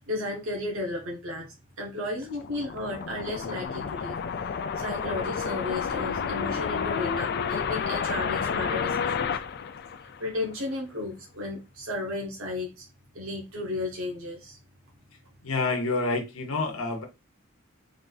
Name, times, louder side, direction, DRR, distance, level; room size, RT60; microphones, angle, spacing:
voice 1, 0.1-4.2 4.8-9.3 10.0-12.9 13.1-14.6, left 2 dB, 70° right, -1 dB, 1.2 m, -34 dB
sound 1, 2.2-10.5, left 6 dB, 50° left, 0.3 m, -30 dB
voice 2, 15.4-17.0, left 3 dB, 75° left, 3 dB, 1.0 m, -28 dB
3.6 x 2.7 x 4.0 m, 0.25 s
head